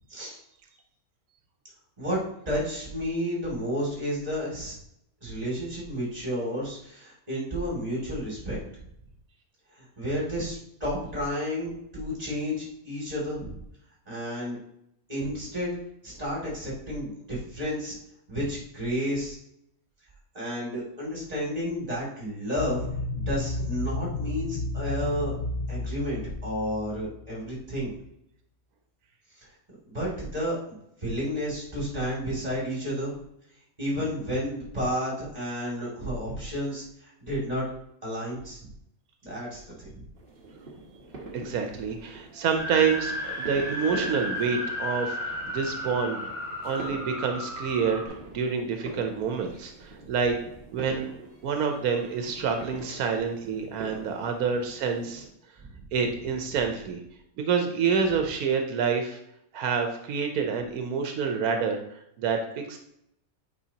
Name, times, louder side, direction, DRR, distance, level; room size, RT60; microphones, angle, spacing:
voice 1, 2.0-4.7 5.2-8.6 9.8-13.6 14.1-14.6 15.1-15.7 16.0-17.9 18.3-19.4 20.3-22.9 23.1-25.3 25.7-27.9 29.8-33.2 33.8-37.6 38.0-38.6 39.2-40.0 52.9-53.0 55.6-55.7, equal, 25° right, -5 dB, 2.7 m, -31 dB
sound 1, 22.6-27.2, left 2 dB, 50° left, 0.9 m, -32 dB
sound 2, 40.2-55.3, right 3 dB, 40° right, 1.2 m, -45 dB
voice 2, 41.3-46.3 46.6-50.4 50.7-51.1 51.4-55.2 55.9-57.0 57.4-59.2 59.5-62.8, right 6 dB, 85° right, 4 dB, 1.2 m, -28 dB
sound 3, 42.6-48.1, equal, ahead, 2.1 m, -33 dB
8.4 x 4.8 x 2.9 m, 0.75 s
omnidirectional pair, 1.5 m